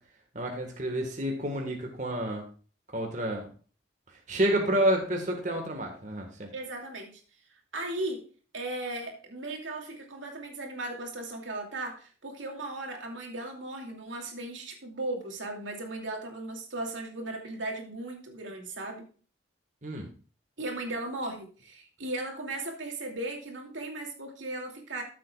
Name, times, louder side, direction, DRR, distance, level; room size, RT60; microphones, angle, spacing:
voice 1, 0.3-2.4 2.9-3.5 4.3-6.5 19.8-20.1, right 1 dB, 40° right, 1 dB, 1.5 m, -29 dB
voice 2, 6.5-7.2 7.7-8.2 8.5-19.0 20.6-25.0, right 2 dB, 90° right, 1 dB, 2.6 m, -37 dB
14.0 x 7.6 x 2.4 m, 0.40 s
head